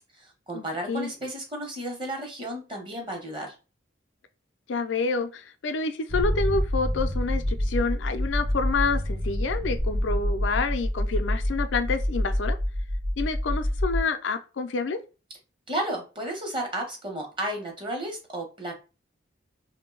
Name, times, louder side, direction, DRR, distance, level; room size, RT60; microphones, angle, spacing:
voice 1, 0.0-3.5 15.7-18.7, right 1 dB, 25° right, 0.8 m, -33 dB
voice 2, 0.5-1.1 4.7-12.6 13.2-15.0, left 4 dB, 85° left, 0.5 m, -28 dB
sound 1, 6.1-14.0, equal, 70° right, 0.8 m, -27 dB
2.6 x 2.2 x 3.7 m
head